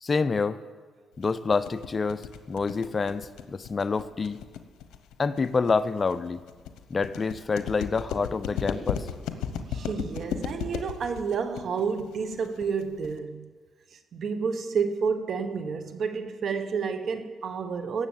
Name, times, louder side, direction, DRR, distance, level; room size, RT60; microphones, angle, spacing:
voice 1, 0.0-0.6 1.2-4.4 5.2-6.4 6.9-9.1, left 4 dB, 35° left, 0.5 m, -27 dB
sound 1, 1.2-13.2, left 8 dB, 85° left, 0.9 m, -35 dB
voice 2, 9.5-13.5 13.9-18.1, right 5 dB, 55° right, 1.1 m, -30 dB
17.5 x 7.5 x 7.3 m
cardioid pair, 90°, 0 cm